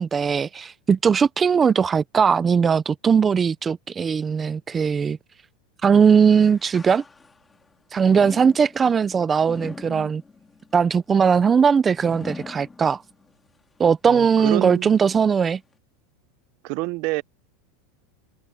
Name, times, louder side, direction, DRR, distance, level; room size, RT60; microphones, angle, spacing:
voice 1, 0.0-5.2 5.8-7.0 7.9-10.2 10.7-13.0 13.8-15.6, right 6 dB, 20° right, 0.4 m, -19 dB
sound 1, 6.0-7.6 8.0-13.3 13.8-13.9 14.7-14.8, left 4 dB, 10° left, 3.6 m, -42 dB
voice 2, 14.1-15.0 16.6-17.2, right 24 dB, 55° right, 0.7 m, -28 dB
open air
supercardioid pair, 150°, 0 cm